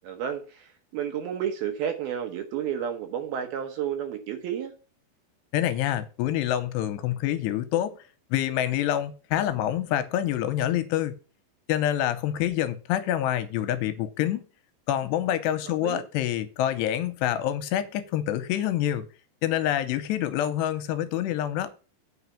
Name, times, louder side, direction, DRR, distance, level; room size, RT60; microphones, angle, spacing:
voice 1, 0.0-4.7 15.8-16.0, right 9 dB, 70° right, 6 dB, 2.5 m, -31 dB
voice 2, 5.5-8.0 8.3-11.1 11.7-14.4 14.9-19.1 19.4-21.7, left 12 dB, 85° left, 11 dB, 2.6 m, -26 dB
8.0 x 5.0 x 7.0 m, 0.35 s
omnidirectional pair, 5.2 m